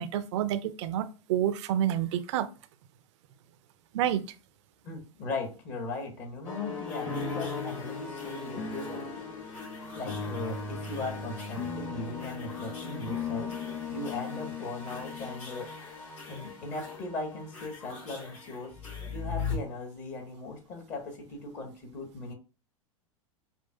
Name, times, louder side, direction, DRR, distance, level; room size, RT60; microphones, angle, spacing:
voice 1, 0.0-2.5 3.9-4.2, right 11 dB, 55° right, 0.5 m, -28 dB
voice 2, 4.8-9.1 10.0-13.6 13.9-18.8 19.1-22.3, left 2 dB, 40° left, 1.4 m, -38 dB
sound 1, 6.4-19.6, left 5 dB, 60° left, 1.9 m, -37 dB
5.5 x 2.5 x 2.3 m
figure-of-eight pair, 95°, 18 cm